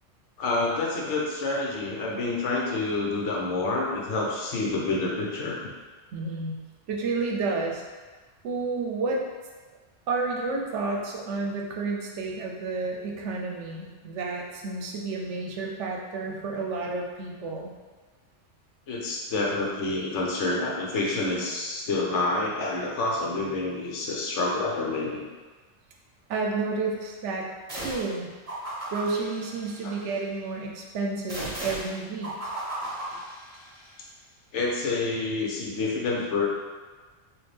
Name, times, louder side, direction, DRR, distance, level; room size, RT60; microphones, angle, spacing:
voice 1, 0.4-5.6 18.9-25.2 34.5-36.5, left 3 dB, 70° left, -3 dB, 1.0 m, -28 dB
voice 2, 6.1-6.6 6.9-7.8 8.4-9.2 10.1-17.7 26.3-28.3 28.9-32.5, right 3 dB, 70° right, 0 dB, 0.9 m, -31 dB
sound 1, 27.7-28.2 28.5-30.2 31.3-33.9, right 1 dB, 30° right, 0.8 m, -36 dB
4.2 x 2.5 x 3.2 m, 1.3 s
omnidirectional pair, 1.3 m